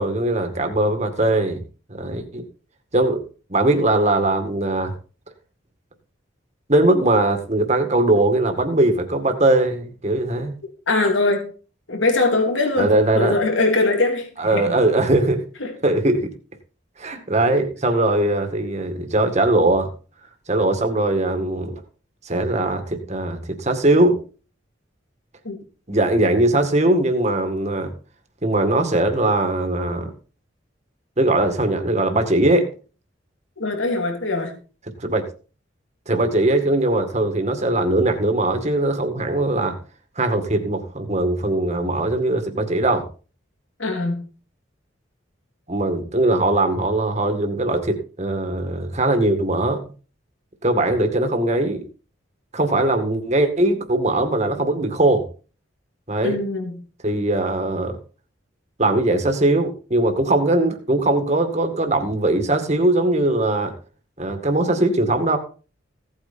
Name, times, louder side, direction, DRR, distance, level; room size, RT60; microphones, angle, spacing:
voice 1, 0.0-1.6 1.9-2.4 2.9-3.2 3.5-4.9 6.7-10.6 12.8-13.4 14.4-15.4 15.8-16.3 17.0-19.9 20.5-21.8 22.2-24.2 25.9-27.9 28.4-30.1 31.2-32.7 35.0-35.3 36.1-39.8 40.2-43.1 45.7-49.8 50.6-51.8 52.5-55.3 56.1-56.4 57.0-58.0 58.8-63.7 64.2-65.4, right 2 dB, 35° right, 6 dB, 2.1 m, -20 dB
voice 2, 10.9-11.5 11.9-14.7 15.6-15.8 25.4-25.6 33.6-34.6 43.8-44.2 56.2-56.8, left 2 dB, 80° left, 3 dB, 3.4 m, -22 dB
16.5 x 8.9 x 4.4 m, 0.37 s
head